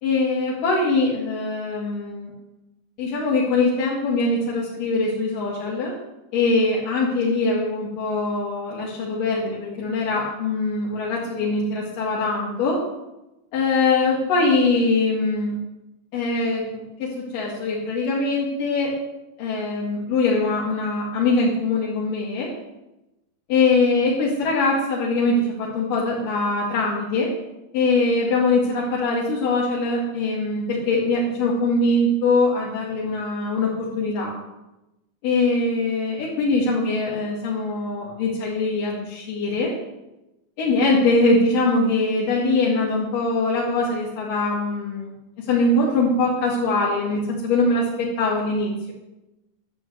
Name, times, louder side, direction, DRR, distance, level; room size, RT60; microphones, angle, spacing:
voice 1, 0.0-2.3 3.0-5.9 6.3-12.8 13.5-15.6 16.1-18.9 19.4-22.5 23.5-27.3 27.7-34.4 35.2-39.7 40.6-45.1 45.4-48.9, left 3 dB, 90° left, -5 dB, 3.7 m, -22 dB
11.5 x 7.3 x 7.6 m, 0.96 s
omnidirectional pair, 3.7 m